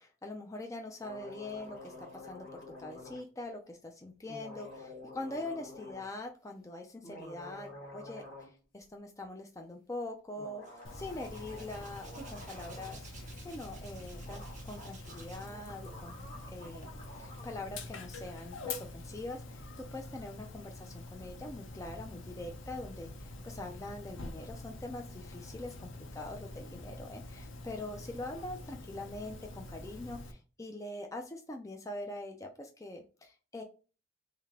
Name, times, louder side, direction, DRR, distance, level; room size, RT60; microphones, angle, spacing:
voice 1, 0.0-13.1 13.4-33.6, left 2 dB, 15° left, 3 dB, 0.4 m, -43 dB
sound 1, 1.0-3.2 4.3-6.1 6.9-8.5 8.8-8.9 10.3-13.0 14.0-14.1 14.2-17.5, left 2 dB, 45° left, 1.5 m, -49 dB
Hands, 10.6-15.6 15.9-16.8, right 4 dB, 35° right, 1.0 m, -55 dB
Dog, 10.8-30.3, left 2 dB, 65° left, 0.6 m, -46 dB
3.3 x 3.2 x 3.7 m, 0.35 s
head